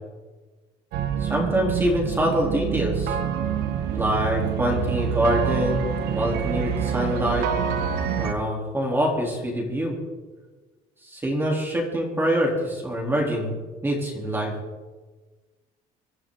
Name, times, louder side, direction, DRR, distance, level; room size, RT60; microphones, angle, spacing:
sound 1, 0.9-8.3, right 9 dB, 80° right, 1.4 m, -27 dB
voice 1, 1.2-3.2 3.9-7.5 8.2-10.0 11.0-13.6 13.8-14.5, equal, 15° right, -2 dB, 3.7 m, -25 dB
24.0 x 12.5 x 4.0 m, 1.3 s
cardioid pair, 130°, 16 cm